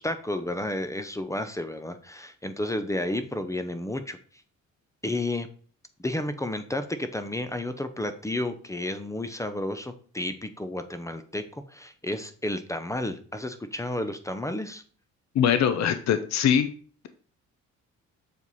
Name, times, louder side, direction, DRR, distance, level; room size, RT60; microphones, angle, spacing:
voice 1, 0.0-4.2 5.0-5.5 6.0-14.8, left 1 dB, 10° left, 10 dB, 0.7 m, -31 dB
voice 2, 15.3-16.7, left 8 dB, 65° left, 10 dB, 0.7 m, -22 dB
7.2 x 4.7 x 4.1 m, 0.43 s
cardioid pair, 90°, 30 cm